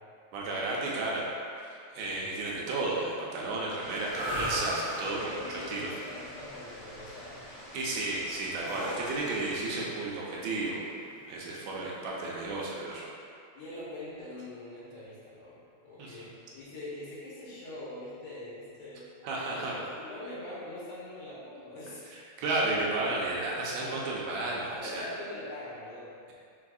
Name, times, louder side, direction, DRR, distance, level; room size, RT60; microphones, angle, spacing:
voice 1, 0.3-1.3 1.7-5.9 7.7-10.8 11.3-13.1 16.0-16.2 19.2-19.7 22.1-25.1, right 2 dB, 75° right, -4 dB, 1.8 m, -33 dB
sound 1, 3.8-9.7, equal, 50° left, 1.6 m, -47 dB
sound 2, 4.0-12.0, right 1 dB, 60° right, 1.2 m, -38 dB
voice 2, 5.0-7.4 13.5-15.6 15.8-19.0 19.5-22.0 23.3-23.5 24.7-26.1, left 1 dB, 80° left, -9 dB, 2.5 m, -43 dB
4.7 x 4.5 x 2.5 m, 2.4 s
omnidirectional pair, 3.5 m